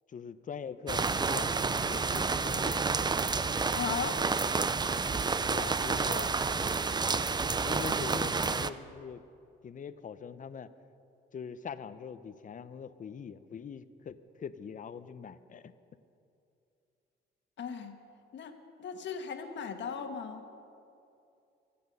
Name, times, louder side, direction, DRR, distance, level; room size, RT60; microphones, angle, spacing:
voice 1, 0.1-2.8 5.5-6.3 7.6-9.2 9.6-10.7 11.3-15.7, left 7 dB, 40° left, 13 dB, 0.7 m, -42 dB
sound 1, 0.9-8.7, right 4 dB, 20° right, 0.5 m, -30 dB
voice 2, 3.7-4.2 17.6-17.9 18.3-20.4, left 6 dB, 65° left, 6 dB, 1.5 m, -37 dB
23.5 x 8.6 x 5.5 m, 2.6 s
cardioid pair, 90°, 20 cm